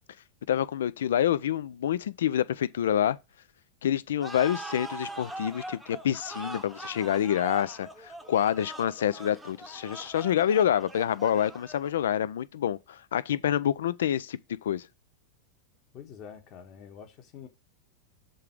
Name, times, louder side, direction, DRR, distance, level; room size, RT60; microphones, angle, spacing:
voice 1, 0.5-3.2 3.8-14.9, left 10 dB, 60° left, 0.4 m, -27 dB
sound 1, 4.2-12.1, right 1 dB, 5° right, 0.8 m, -42 dB
voice 2, 15.9-17.5, left 7 dB, 35° left, 1.4 m, -46 dB
6.6 x 3.8 x 4.8 m
figure-of-eight pair, 90°, 0 cm